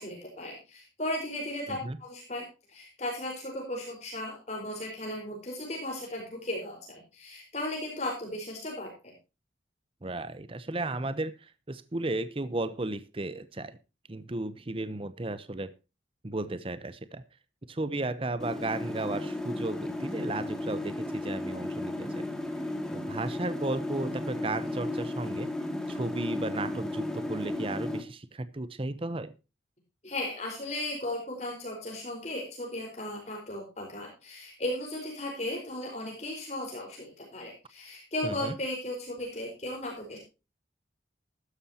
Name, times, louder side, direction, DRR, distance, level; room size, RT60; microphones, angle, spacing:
voice 1, 0.0-9.1 30.0-40.2, left 1 dB, 40° left, 0 dB, 4.5 m, -36 dB
voice 2, 10.0-13.8 14.1-15.7 16.2-17.2 17.7-22.3 22.9-25.5 25.9-29.3 38.2-38.5, right 2 dB, 30° right, 14 dB, 0.7 m, -34 dB
sound 1, 18.4-28.0, left 1 dB, 5° left, 2.2 m, -34 dB
15.0 x 13.0 x 2.8 m, 0.29 s
head